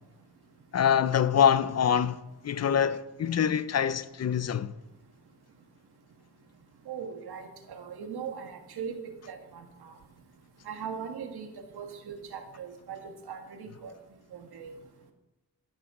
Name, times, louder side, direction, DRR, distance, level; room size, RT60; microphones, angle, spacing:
voice 1, 0.7-2.2 2.4-4.7, left 8 dB, 45° left, 0.5 m, -25 dB
voice 2, 6.9-9.9 10.6-11.5 11.7-13.9 14.3-14.8, right 7 dB, 85° right, 1.6 m, -40 dB
13.0 x 11.5 x 3.7 m
wide cardioid pair, 130°, 37 cm